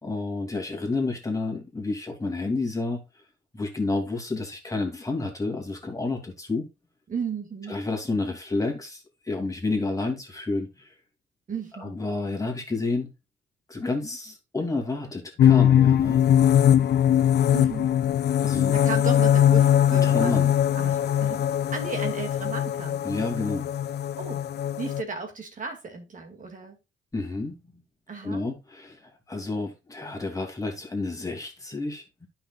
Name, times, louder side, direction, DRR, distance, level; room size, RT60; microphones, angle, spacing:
voice 1, 0.0-3.0 3.5-6.7 7.7-10.9 11.8-13.1 13.7-16.3 18.4-18.7 19.9-20.5 23.0-23.7 27.1-27.8 28.2-32.3, left 3 dB, 15° left, 2.6 m, -30 dB
voice 2, 7.1-7.8 11.5-11.9 17.5-17.9 18.7-20.4 20.8-21.4 21.7-23.0 24.2-24.4 24.8-26.8 28.1-28.4, right 5 dB, 40° right, 2.2 m, -35 dB
sound 1, 15.4-25.0, left 10 dB, 60° left, 0.5 m, -21 dB
10.0 x 5.9 x 2.4 m
cardioid pair, 90°, 20 cm